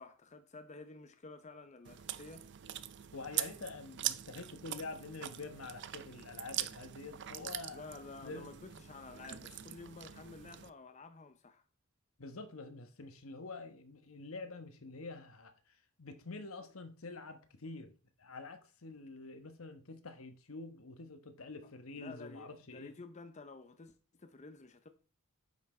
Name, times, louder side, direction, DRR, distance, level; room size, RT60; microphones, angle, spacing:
voice 1, 0.0-2.5 7.7-11.6 22.0-24.9, left 3 dB, 35° left, 0.7 m, -51 dB
Chewing mastication, 1.8-10.7, right 13 dB, 55° right, 0.5 m, -43 dB
voice 2, 3.1-7.8 8.2-8.5 12.2-17.9 18.2-22.9, left 3 dB, 75° left, 1.2 m, -47 dB
9.4 x 5.9 x 4.3 m
head